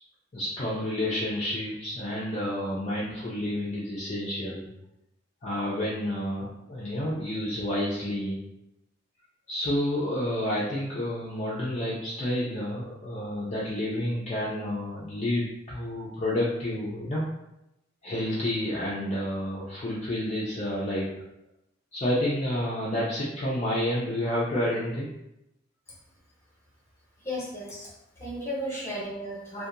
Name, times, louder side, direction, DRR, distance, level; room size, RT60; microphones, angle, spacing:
voice 1, 0.3-4.7 5.4-8.4 9.5-17.2 18.0-21.2 21.9-25.1 28.7-28.8, left 1 dB, 35° left, -6 dB, 0.4 m, -30 dB
voice 2, 27.2-27.9 28.2-29.7, equal, 15° left, -6 dB, 0.8 m, -34 dB
2.7 x 2.1 x 2.5 m, 0.86 s
head